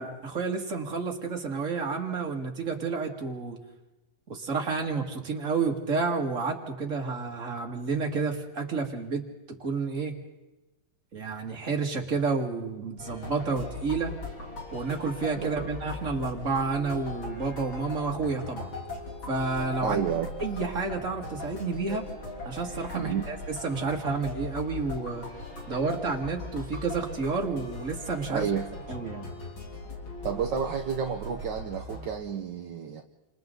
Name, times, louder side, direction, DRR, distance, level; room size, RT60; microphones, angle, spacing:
voice 1, 0.0-3.6 4.3-9.2 9.6-10.1 11.1-14.1 14.7-18.7 19.3-20.0 20.4-22.1 22.4-25.3 25.7-28.5 28.9-29.3, right 4 dB, 40° right, 1 dB, 2.6 m, -30 dB
sound 1, 13.0-32.1, left 2 dB, 80° left, 4.1 m, -39 dB
voice 2, 15.4-15.7 19.8-20.3 22.9-23.2 28.3-28.7 30.2-33.0, right 7 dB, 65° right, 2 dB, 1.7 m, -30 dB
29.0 x 27.5 x 4.0 m, 1.1 s
omnidirectional pair, 2.1 m